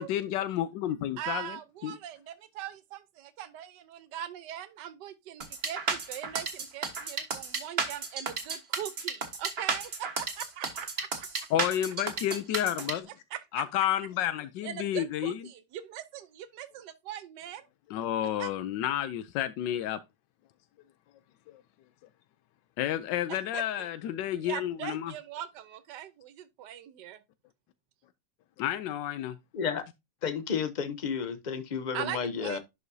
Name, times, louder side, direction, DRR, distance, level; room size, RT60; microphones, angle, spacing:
voice 1, 0.0-1.6 1.8-2.0 11.5-13.1 13.5-15.4 17.9-20.0 22.8-25.1 28.6-29.4, left 11 dB, 90° left, 1.3 m, -30 dB
voice 2, 1.2-11.5 12.8-12.9 13.3-13.6 14.6-17.7 18.4-18.5 23.3-23.9 24.4-27.2 31.9-32.6, right 11 dB, 75° right, 1.4 m, -41 dB
sound 1, 5.4-12.9, right 4 dB, 40° right, 1.4 m, -32 dB
voice 3, 29.5-29.8 30.2-32.6, left 6 dB, 55° left, 0.5 m, -32 dB
11.0 x 5.0 x 2.7 m
omnidirectional pair, 1.9 m